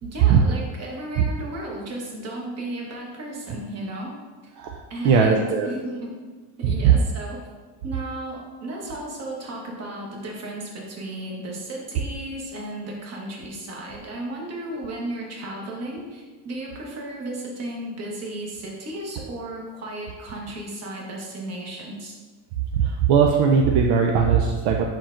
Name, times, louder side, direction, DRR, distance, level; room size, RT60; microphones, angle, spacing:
voice 1, 0.0-4.2 4.4-4.5 4.9-6.1 6.6-7.4 7.8-22.2, right 1 dB, 35° right, -2 dB, 1.1 m, -34 dB
voice 2, 4.6-5.7 6.6-7.0 22.7-24.8, right 6 dB, 65° right, 2 dB, 0.5 m, -19 dB
4.5 x 4.4 x 2.5 m, 1.4 s
cardioid pair, 115°, 44 cm